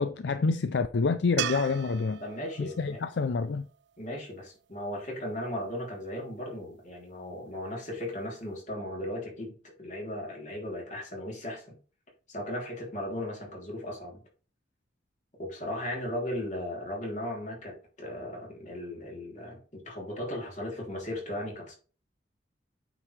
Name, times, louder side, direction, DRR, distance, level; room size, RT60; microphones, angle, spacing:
voice 1, 0.0-2.2 2.6-3.7, left 4 dB, 70° left, 0.4 m, -27 dB
sound 1, 1.4-4.6 7.9-8.0, right 11 dB, 70° right, 0.3 m, -38 dB
voice 2, 2.2-3.0 4.0-11.8 12.3-14.2 15.4-21.7, left 1 dB, 45° left, 3.2 m, -37 dB
8.9 x 5.0 x 3.2 m
head